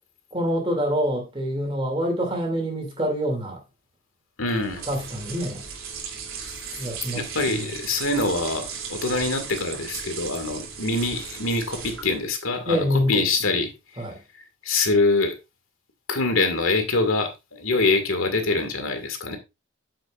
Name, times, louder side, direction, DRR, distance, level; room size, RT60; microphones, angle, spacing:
voice 1, 0.3-3.6 4.9-5.6 6.8-7.7 12.7-13.3 14.0-14.2, equal, 25° right, 2.6 m, -26 dB
voice 2, 4.4-4.8 7.1-14.0 14.6-15.3 16.1-19.4, left 3 dB, 85° left, 2.0 m, -24 dB
sound 1, 4.5-12.3, right 6 dB, 85° right, 2.9 m, -36 dB
8.9 x 7.6 x 2.5 m
head